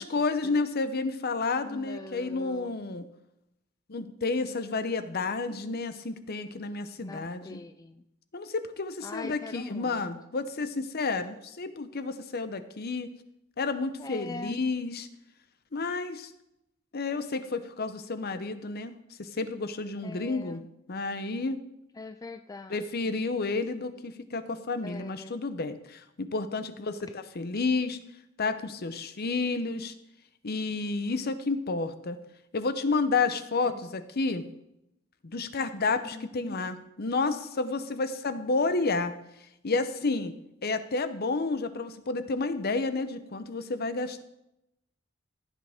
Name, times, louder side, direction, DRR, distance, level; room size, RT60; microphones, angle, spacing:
voice 1, 0.0-3.0 3.9-7.6 8.3-13.1 13.6-15.1 15.7-16.3 16.9-18.9 19.2-20.6 20.9-21.6 22.7-28.0 28.4-29.9 30.4-32.2 32.5-34.4 35.2-39.1 39.6-40.3 40.6-44.2, left 3 dB, 50° left, 11 dB, 0.8 m, -30 dB
voice 2, 1.6-2.8 7.0-8.0 9.0-10.1 14.0-14.6 20.0-20.6 22.0-23.1 24.8-25.4 33.6-33.7 36.1-36.6, left 3 dB, 20° left, 8 dB, 0.3 m, -42 dB
15.0 x 8.7 x 3.6 m, 0.85 s
head